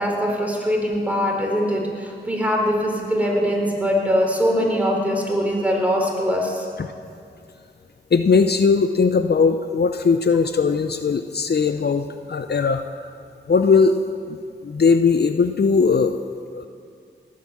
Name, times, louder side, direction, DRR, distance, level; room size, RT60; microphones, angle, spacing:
voice 1, 0.0-6.7, equal, 5° right, -1 dB, 4.1 m, -22 dB
voice 2, 8.1-12.8 13.5-14.0 14.3-14.4 14.6-16.1 16.5-16.7, left 5 dB, 55° left, 8 dB, 0.6 m, -19 dB
18.0 x 8.6 x 7.4 m, 2.4 s
cardioid pair, 45°, 19 cm